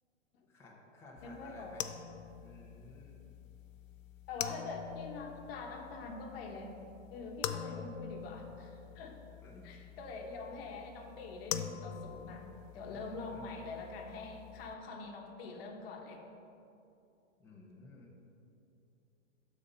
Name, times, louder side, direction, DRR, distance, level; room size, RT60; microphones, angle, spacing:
voice 1, 0.5-2.0 2.4-3.2 9.4-9.7 12.8-13.4 17.4-18.1, left 2 dB, 5° left, -4 dB, 0.8 m, -54 dB
sound 1, 1.2-14.7, left 9 dB, 80° left, 0.6 m, -45 dB
voice 2, 1.2-1.8 4.3-6.8 7.1-9.2 9.6-12.5 12.7-16.2, left 3 dB, 50° left, 2 dB, 1.3 m, -44 dB
12.0 x 4.3 x 5.1 m, 2.8 s
hypercardioid pair, 155°, 38 cm